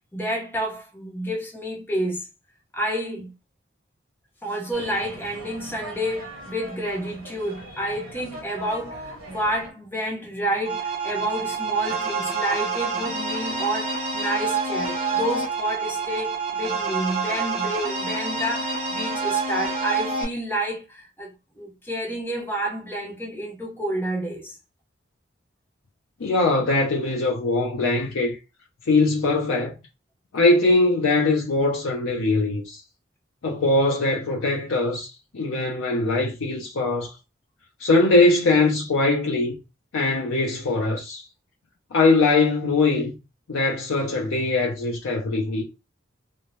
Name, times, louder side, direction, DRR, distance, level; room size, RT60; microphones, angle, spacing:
voice 1, 0.1-2.3 2.7-3.3 4.4-24.6, right 1 dB, 10° left, 0.6 m, -29 dB
sound 1, 4.7-9.7, right 1 dB, 90° right, 0.8 m, -40 dB
sound 2, 10.6-20.2, right 4 dB, 30° right, 0.6 m, -27 dB
voice 2, 26.2-28.4 28.9-29.7 30.3-32.8 33.4-37.1 37.8-39.5 39.9-41.3 41.9-43.1 43.5-45.6, left 2 dB, 90° left, 0.5 m, -21 dB
2.6 x 2.0 x 2.9 m
head